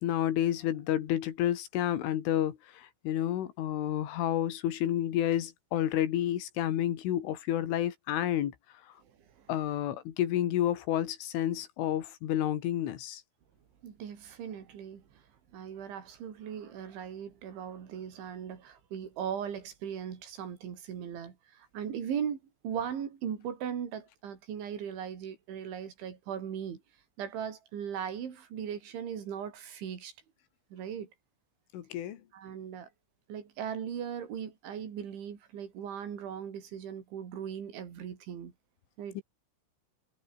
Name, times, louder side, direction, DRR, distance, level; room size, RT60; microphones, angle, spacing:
voice 1, 0.0-8.5 9.5-13.2 31.7-32.2 39.1-39.2, left 11 dB, 75° left, 4.7 m, -30 dB
voice 2, 9.0-9.5 13.8-15.2 15.5-26.8 27.2-30.1 30.7-31.1 32.3-32.9 33.3-38.5 39.0-39.2, right 8 dB, 70° right, 6.0 m, -38 dB
omnidirectional pair, 5.7 m